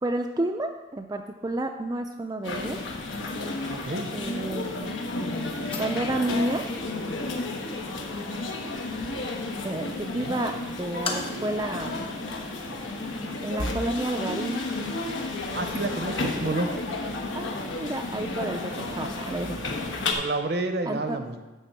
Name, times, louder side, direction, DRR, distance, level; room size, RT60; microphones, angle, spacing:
voice 1, 0.0-2.8 4.1-4.9 5.8-6.6 9.6-11.9 13.4-14.6 17.3-19.6 20.9-21.4, right 1 dB, 20° right, 3 dB, 0.4 m, -30 dB
sound 1, 2.4-20.1, left 2 dB, 85° left, 1.2 m, -32 dB
sound 2, 3.3-11.6, left 3 dB, 30° left, 1.0 m, -43 dB
voice 2, 3.7-4.1 10.2-10.4 15.5-16.7 20.1-21.4, right 2 dB, 55° right, 7 dB, 0.7 m, -30 dB
11.0 x 3.7 x 7.5 m, 1.2 s
head